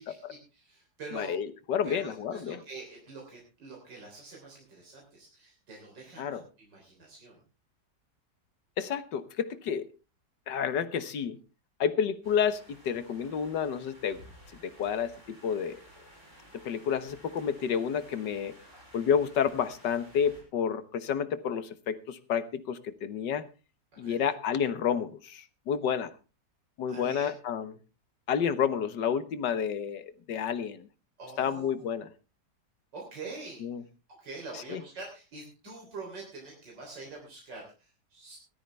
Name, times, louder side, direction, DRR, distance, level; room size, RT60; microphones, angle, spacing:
voice 1, 0.0-1.3 1.8-7.4 18.7-18.8 19.8-19.9 23.9-24.2 26.9-27.3 31.2-31.9 32.9-33.7 34.2-38.4, right 3 dB, 85° right, -1 dB, 4.1 m, -45 dB
voice 2, 1.1-2.6 6.2-6.4 8.8-9.9 10.5-11.4 11.8-14.2 14.6-15.8 16.5-18.5 18.9-23.4 24.0-26.1 26.8-27.7 28.3-30.9 31.4-32.1 33.6-33.8 34.7-34.8, left 7 dB, 80° left, 12 dB, 1.8 m, -30 dB
sound 1, 12.2-20.4, equal, 40° right, 6.3 m, -55 dB
17.5 x 13.0 x 3.4 m, 0.32 s
omnidirectional pair, 1.9 m